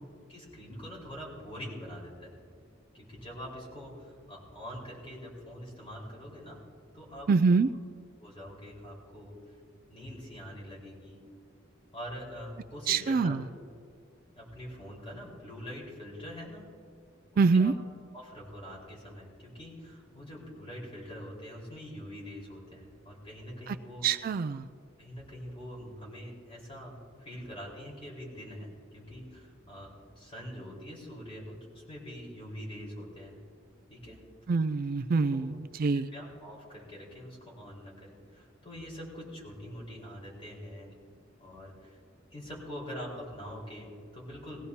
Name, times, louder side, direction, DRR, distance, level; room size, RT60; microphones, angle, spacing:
voice 1, 0.3-2.3 2.9-6.6 6.9-7.3 8.2-9.4 9.9-11.2 11.9-13.6 14.4-16.6 17.3-17.7 18.1-24.1 25.0-33.3 33.9-34.2 35.3-35.6 35.9-41.0 41.4-42.0 42.3-44.6, equal, 30° left, -4 dB, 4.5 m, -44 dB
voice 2, 7.3-7.7 12.9-13.4 17.4-17.7 23.7-23.8 24.0-24.7 34.5-36.1, right 4 dB, 45° right, 12 dB, 0.3 m, -25 dB
20.0 x 16.0 x 2.8 m, 2.1 s
head